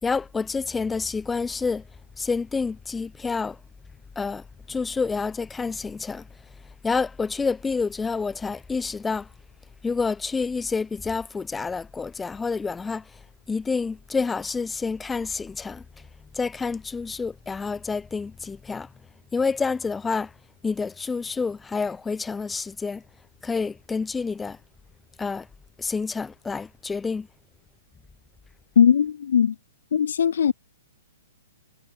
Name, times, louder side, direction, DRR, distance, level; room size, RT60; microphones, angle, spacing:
voice 1, 0.0-1.8 2.2-3.6 4.2-6.3 6.8-9.3 9.8-13.1 13.5-15.8 16.3-18.9 19.3-20.3 20.6-23.0 23.4-24.6 25.2-25.5 25.8-27.3, left 4 dB, 5° left, 5.2 m, -28 dB
voice 2, 28.8-29.5 29.9-30.5, left 8 dB, 70° left, 6.0 m, -19 dB
hypercardioid pair, 170°, 0 cm